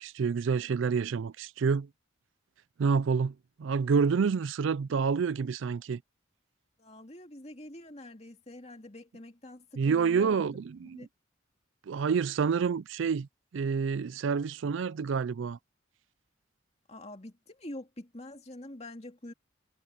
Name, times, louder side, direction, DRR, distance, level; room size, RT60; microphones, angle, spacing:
voice 1, 0.0-1.9 2.8-6.0 9.8-11.1 11.9-13.3 13.5-15.6, right 5 dB, 75° right, 0.4 m, -28 dB
voice 2, 6.8-10.5 10.9-11.1 16.9-19.3, left 1 dB, 30° left, 2.6 m, -45 dB
head